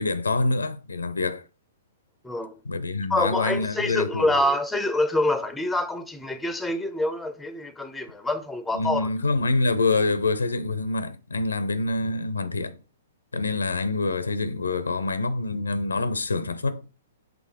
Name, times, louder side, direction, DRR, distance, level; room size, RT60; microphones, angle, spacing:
voice 1, 0.0-1.4 2.7-4.3 8.7-12.8 13.3-16.8, left 3 dB, 85° left, 0.6 m, -26 dB
voice 2, 2.2-2.6 3.1-9.1, left 1 dB, 5° left, 0.7 m, -26 dB
6.1 x 3.1 x 5.0 m
hypercardioid pair, 120°, 0 cm